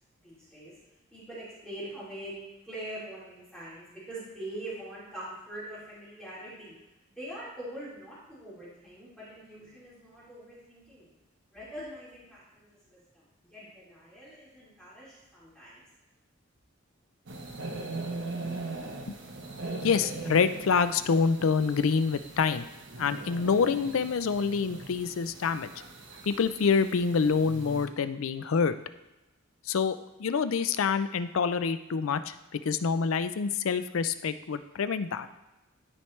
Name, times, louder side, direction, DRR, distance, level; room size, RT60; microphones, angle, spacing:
voice 1, 0.2-0.7 1.1-2.3 2.6-6.7 7.1-11.1 11.5-15.8, right 1 dB, 5° left, -10 dB, 2.7 m, -43 dB
sound 1, 17.3-27.9, right 2 dB, 60° right, 0.9 m, -40 dB
voice 2, 19.8-22.7 23.0-25.7 26.2-28.7 29.7-35.3, left 5 dB, 80° left, 12 dB, 0.4 m, -27 dB
13.0 x 4.5 x 3.2 m, 1.0 s
head